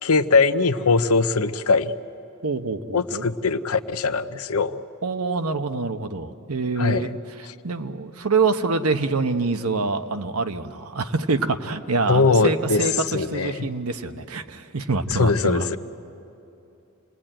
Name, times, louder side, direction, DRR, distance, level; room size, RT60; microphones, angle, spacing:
voice 1, 0.0-1.9 2.9-4.8 6.8-7.2 12.1-12.9 13.1-13.7 15.1-15.8, left 4 dB, 85° left, 11 dB, 0.8 m, -21 dB
voice 2, 2.4-3.3 5.0-15.7, right 3 dB, 85° right, 8 dB, 1.1 m, -26 dB
28.0 x 19.5 x 8.9 m, 2.9 s
head